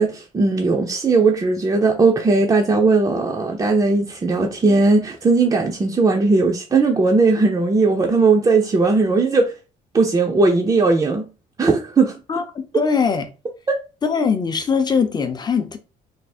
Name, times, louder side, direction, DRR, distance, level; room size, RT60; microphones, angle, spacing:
voice 1, 0.0-9.5 9.9-11.2 11.6-12.1 13.7-13.8, right 3 dB, 20° right, 0.5 m, -18 dB
voice 2, 12.3-13.3 14.0-15.8, left 5 dB, 25° left, 0.6 m, -21 dB
3.4 x 2.0 x 4.2 m
cardioid pair, 110°, 17 cm